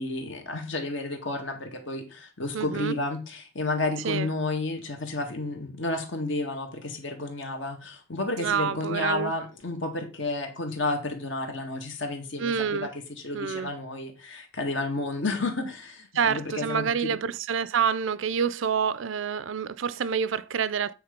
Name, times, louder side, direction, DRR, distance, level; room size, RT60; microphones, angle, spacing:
voice 1, 0.0-17.1, left 2 dB, 60° left, 1.8 m, -31 dB
voice 2, 2.5-2.9 4.0-4.3 8.4-9.3 12.4-12.9 13.3-13.7 16.1-20.9, right 7 dB, 70° right, 0.5 m, -27 dB
8.8 x 3.6 x 5.2 m
head